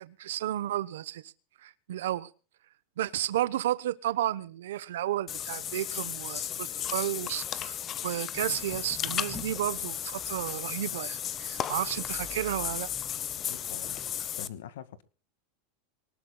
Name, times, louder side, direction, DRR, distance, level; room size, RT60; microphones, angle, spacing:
voice 1, 0.0-1.3 1.6-2.3 3.0-12.9, right 13 dB, 90° right, 1.0 m, -32 dB
Water / Bathtub (filling or washing), 5.3-14.5, left 10 dB, 30° left, 1.0 m, -35 dB
sound 1, 8.3-14.3, left 3 dB, 15° left, 2.9 m, -49 dB
voice 2, 13.5-14.0 14.4-15.0, left 9 dB, 85° left, 2.1 m, -44 dB
24.0 x 19.0 x 2.3 m
supercardioid pair, 145°, 0 cm